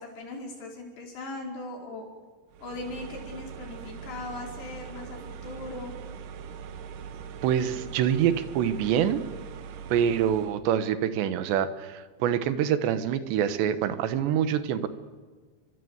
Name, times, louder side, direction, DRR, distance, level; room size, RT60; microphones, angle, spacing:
voice 1, 0.0-2.1 2.6-5.9, left 2 dB, 70° left, 1 dB, 6.8 m, -39 dB
sound 1, 2.5-10.6, right 7 dB, 65° right, 2.4 m, -41 dB
voice 2, 7.4-9.2 9.9-14.9, right 9 dB, 90° right, 12 dB, 3.5 m, -25 dB
29.5 x 24.0 x 8.1 m, 1.4 s
omnidirectional pair, 4.9 m